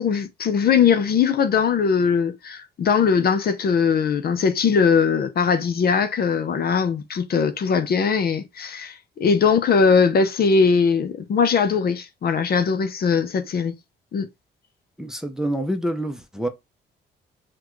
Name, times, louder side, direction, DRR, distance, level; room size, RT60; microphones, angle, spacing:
voice 1, 0.0-13.8 14.1-14.3, left 6 dB, 50° left, 0.6 m, -20 dB
voice 2, 15.0-16.5, right 1 dB, 5° right, 0.7 m, -27 dB
5.8 x 2.3 x 3.1 m
cardioid pair, 90°, 20 cm